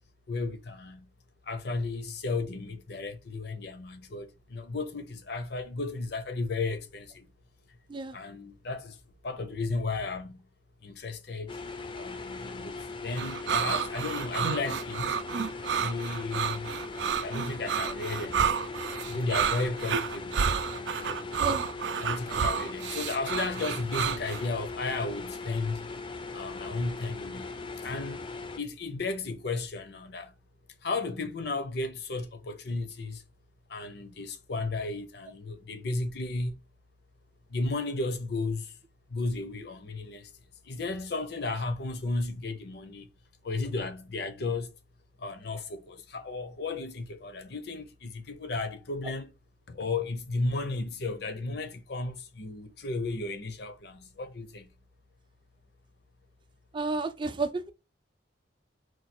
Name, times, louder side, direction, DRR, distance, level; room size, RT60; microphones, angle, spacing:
voice 1, 0.3-1.1 1.5-7.3 8.1-9.0 9.2-10.5 10.8-11.6 11.9-12.8 13.0-15.2 15.8-16.8 17.2-18.5 19.1-20.4 20.9-21.3 22.0-25.9 26.3-27.6 27.8-28.3 28.6-30.3 30.8-33.2 33.7-36.6 37.5-38.7 39.1-40.3 40.6-43.1 43.4-44.8 45.2-49.3 49.7-54.7, left 3 dB, 65° left, 0.7 m, -34 dB
sound 1, 11.5-28.6, left 3 dB, 30° left, 0.4 m, -39 dB
sound 2, 13.2-24.4, right 7 dB, 80° right, 0.4 m, -30 dB
voice 2, 56.7-57.7, right 3 dB, 30° right, 0.5 m, -31 dB
4.5 x 2.3 x 4.3 m
head